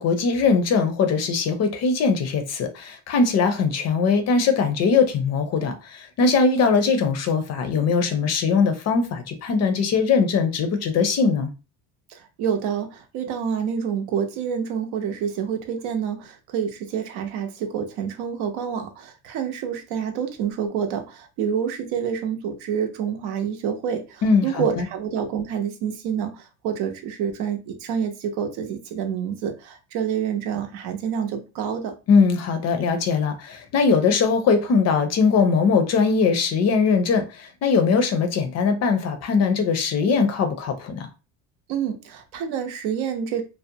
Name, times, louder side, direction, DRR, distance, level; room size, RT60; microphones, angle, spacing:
voice 1, 0.0-11.5 24.2-24.9 32.1-41.1, left 5 dB, 40° left, 0.5 m, -21 dB
voice 2, 12.1-31.9 41.7-43.4, right 7 dB, 70° right, 0.7 m, -28 dB
2.6 x 2.1 x 2.6 m
cardioid pair, 130°, 40 cm